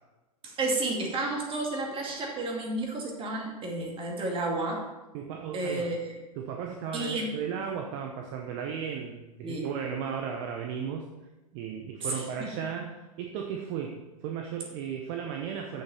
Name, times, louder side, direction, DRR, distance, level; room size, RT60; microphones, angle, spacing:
voice 1, 0.4-4.8 5.5-6.2 6.9-7.3 9.4-9.7 12.0-12.5, right 2 dB, 30° right, 0 dB, 2.3 m, -31 dB
voice 2, 5.1-5.9 6.4-11.1 11.5-12.9 13.2-15.8, right 7 dB, 50° right, 3 dB, 0.9 m, -35 dB
7.6 x 7.2 x 4.3 m, 1.1 s
hypercardioid pair, 105°, 19 cm